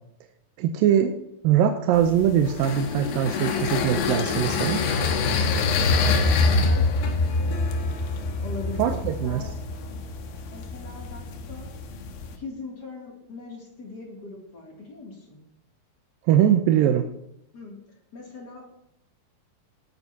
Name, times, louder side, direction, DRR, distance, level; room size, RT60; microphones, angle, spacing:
voice 1, 0.6-1.1 1.4-4.8 8.8-9.4 16.3-17.1, right 10 dB, 85° right, 5 dB, 2.4 m, -21 dB
sound 1, 1.9-12.4, left 3 dB, 90° left, 2.9 m, -25 dB
voice 2, 5.9-7.8 8.4-10.0 10.5-11.7 12.3-15.4 17.5-17.8 18.1-18.7, left 3 dB, 30° left, -2 dB, 2.6 m, -41 dB
19.5 x 9.1 x 2.8 m, 0.75 s
omnidirectional pair, 4.1 m